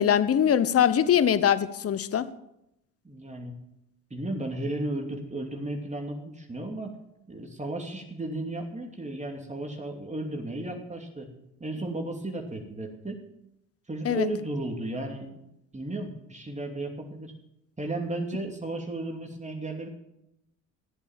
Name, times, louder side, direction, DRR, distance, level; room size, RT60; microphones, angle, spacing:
voice 1, 0.0-2.3 14.0-14.3, left 9 dB, 35° left, 15 dB, 1.0 m, -22 dB
voice 2, 3.0-3.6 4.1-7.0 7.3-11.3 11.6-13.2 13.9-15.4 15.7-17.3 17.8-19.9, right 2 dB, 20° right, 2 dB, 2.7 m, -34 dB
14.5 x 8.2 x 7.4 m, 0.84 s
hypercardioid pair, 65°, 39 cm